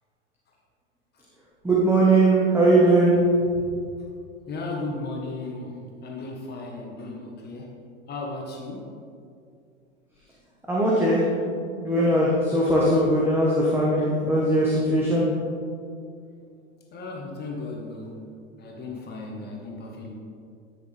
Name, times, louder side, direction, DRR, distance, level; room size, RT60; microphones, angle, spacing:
voice 1, 1.6-3.1 10.7-15.2, right 1 dB, 5° right, -6 dB, 1.3 m, -20 dB
voice 2, 4.5-7.7 8.1-8.9 16.9-18.2 18.6-20.1, left 2 dB, 25° left, 0 dB, 1.5 m, -35 dB
12.5 x 6.5 x 3.5 m, 2.3 s
hypercardioid pair, 100°, 38 cm